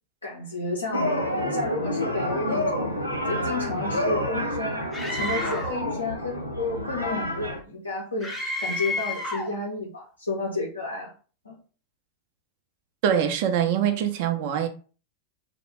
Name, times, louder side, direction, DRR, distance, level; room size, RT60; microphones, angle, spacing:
voice 1, 0.2-1.1 1.5-2.9 3.3-8.3 8.6-11.1 11.4-11.6, left 2 dB, 80° left, 0.6 m, -31 dB
sound 1, 0.9-7.6, left 1 dB, 90° right, 0.6 m, -28 dB
Screaming, 4.9-5.8 8.2-9.6, left 2 dB, 10° left, 0.5 m, -31 dB
voice 2, 13.0-14.7, right 9 dB, 50° right, 0.5 m, -23 dB
2.3 x 2.1 x 3.1 m
figure-of-eight pair, 90°, 0 cm